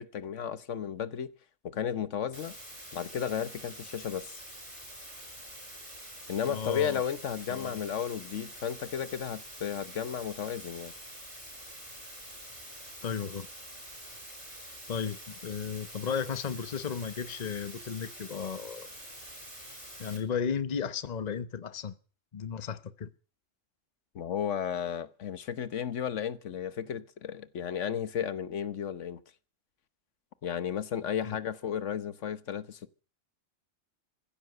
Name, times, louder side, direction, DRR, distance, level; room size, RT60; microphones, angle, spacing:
voice 1, 0.0-1.3 1.6-2.5 2.9-4.4 6.3-10.9 24.1-29.2 30.4-32.9, left 8 dB, 75° left, 1.3 m, -34 dB
sound 1, 2.3-20.2, right 1 dB, 25° right, 5.5 m, -46 dB
voice 2, 6.4-7.0 7.5-7.9 13.0-13.5 14.9-18.9 20.0-21.9 22.3-23.1 31.2-31.4, left 7 dB, 35° left, 1.0 m, -34 dB
15.5 x 13.0 x 6.6 m
omnidirectional pair, 1.3 m